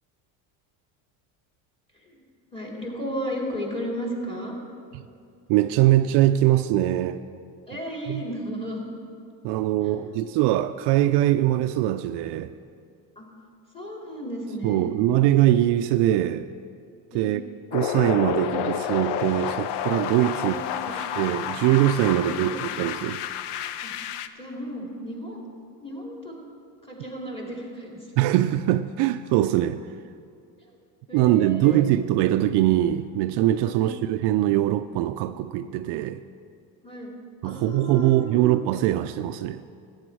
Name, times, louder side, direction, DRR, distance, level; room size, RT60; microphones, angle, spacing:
voice 1, 2.5-4.5 7.7-8.9 9.8-10.0 13.2-13.3 13.7-14.9 17.1-17.3 20.2-21.0 22.1-22.6 23.8-23.9 24.4-25.4 25.8-26.4 26.8-28.0 30.7-30.8 31.1-31.8 33.6-34.0 36.8-37.1 37.4-38.4, equal, 10° left, 2.7 m, -34 dB
voice 2, 5.5-7.2 8.1-8.2 9.4-12.5 14.6-16.5 17.1-17.4 17.7-23.2 28.2-29.9 31.1-36.2 37.4-39.6, right 13 dB, 60° right, 0.5 m, -22 dB
sound 1, 17.7-24.3, left 10 dB, 65° left, 0.7 m, -30 dB
14.0 x 8.9 x 4.6 m
supercardioid pair, 100°, 45 cm